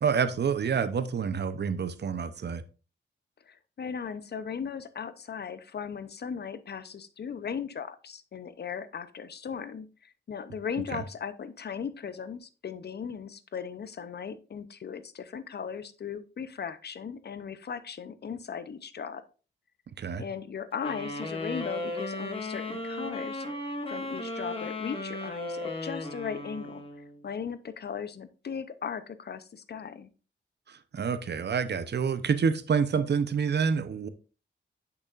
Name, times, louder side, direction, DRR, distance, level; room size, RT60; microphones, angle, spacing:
voice 1, 0.0-2.6 10.9-11.0 20.0-20.2 30.7-34.1, right 6 dB, 55° right, 12 dB, 0.7 m, -28 dB
voice 2, 3.5-19.2 20.2-23.4 23.9-26.8 27.2-30.1, left 7 dB, 55° left, 13 dB, 0.7 m, -37 dB
sound 1, 20.8-27.2, left 2 dB, 25° left, 1.7 m, -36 dB
8.1 x 7.0 x 2.5 m, 0.35 s
cardioid pair, 80°, 20 cm